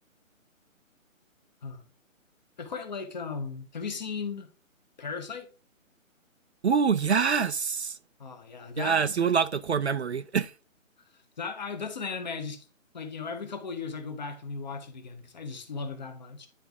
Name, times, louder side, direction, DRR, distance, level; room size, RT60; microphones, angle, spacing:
voice 1, 2.6-4.5 5.0-5.5 8.2-9.3 11.4-12.7 12.9-16.5, left 5 dB, 35° left, 1.0 m, -36 dB
voice 2, 6.6-8.0 8.8-10.5, right 6 dB, 55° right, 0.5 m, -25 dB
10.0 x 3.6 x 3.5 m
hypercardioid pair, 160°, 40 cm